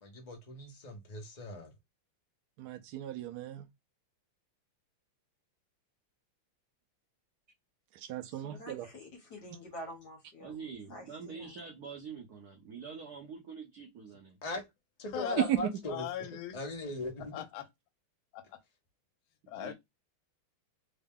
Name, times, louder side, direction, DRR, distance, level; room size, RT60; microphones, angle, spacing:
voice 1, 0.0-1.7 14.4-14.6 15.0-16.1 16.5-17.3, left 2 dB, 35° left, 0.6 m, -39 dB
voice 2, 2.6-3.7 7.9-8.9 15.4-15.7, right 12 dB, 85° right, 0.9 m, -34 dB
voice 3, 8.3-10.6 10.9-11.5, equal, 55° left, 1.6 m, -48 dB
voice 4, 10.4-14.4 19.5-19.7, right 5 dB, 55° right, 1.2 m, -45 dB
voice 5, 15.1-15.5 15.9-16.6 17.3-17.7 18.3-18.6 19.5-19.7, left 11 dB, 75° left, 1.5 m, -39 dB
3.7 x 2.1 x 3.6 m
omnidirectional pair, 2.3 m